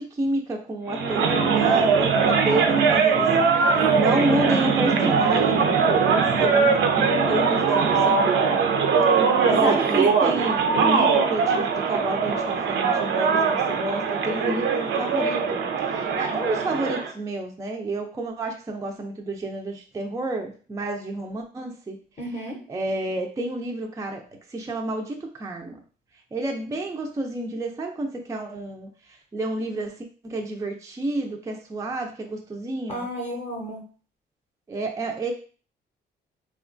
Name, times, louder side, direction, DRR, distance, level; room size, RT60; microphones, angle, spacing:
voice 1, 0.0-3.3 3.5-8.6 9.4-22.0 22.7-24.2 24.5-25.8 26.3-28.9 29.3-33.1 34.7-35.3, right 2 dB, 15° right, 3 dB, 0.3 m, -30 dB
sound 1, 0.9-17.1, right 5 dB, 75° right, 0.5 m, -21 dB
voice 2, 3.7-4.6 9.5-10.0 22.2-22.6 32.9-33.8, equal, 30° left, -1 dB, 0.7 m, -32 dB
2.9 x 2.2 x 2.4 m, 0.39 s
cardioid pair, 90°, 20 cm